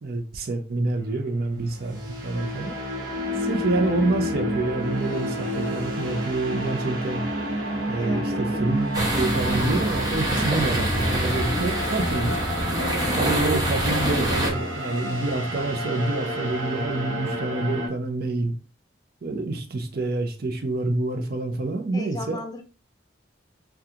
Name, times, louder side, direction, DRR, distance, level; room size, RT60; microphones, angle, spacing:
voice 1, 0.0-2.7 3.4-7.3 7.9-12.4 13.1-18.5 19.2-22.4, right 2 dB, 55° right, 0.6 m, -27 dB
sound 1, 1.6-17.9, equal, 85° right, 1.1 m, -29 dB
voice 2, 8.0-8.6 21.9-22.6, left 2 dB, 20° left, 0.5 m, -36 dB
sound 2, 8.9-14.5, right 1 dB, 20° right, 0.8 m, -26 dB
3.6 x 2.3 x 2.8 m
head